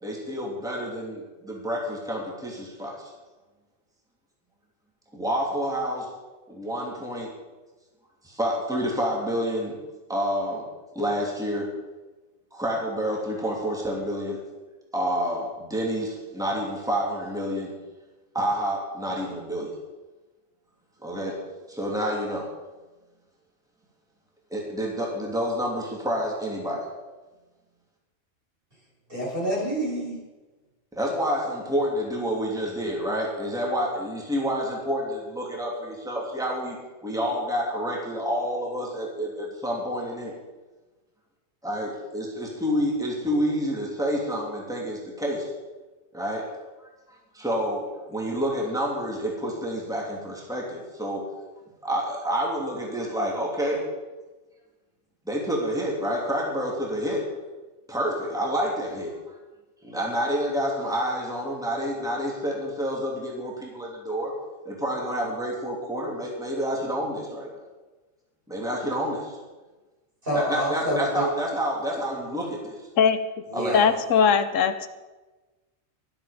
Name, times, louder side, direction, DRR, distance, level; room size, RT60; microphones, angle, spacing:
voice 1, 0.0-3.1 5.1-6.1 6.5-7.3 8.2-9.8 10.1-10.6 10.9-11.7 12.5-14.4 14.9-17.7 18.3-19.7 21.0-21.4 21.7-22.5 24.5-26.8 31.0-36.8 37.0-40.3 41.6-45.5 46.1-46.5 47.3-51.2 51.8-53.8 55.3-57.3 57.9-59.3 59.8-64.3 64.6-67.5 68.5-69.4 70.3-72.8 73.5-73.8, equal, 5° right, -2 dB, 2.9 m, -28 dB
voice 2, 29.1-30.2 70.2-71.2 73.5-73.9, equal, 45° right, -5 dB, 6.4 m, -27 dB
voice 3, 73.7-74.9, left 7 dB, 80° left, 12 dB, 1.1 m, -20 dB
22.5 x 7.9 x 5.2 m, 1.2 s
omnidirectional pair, 1.3 m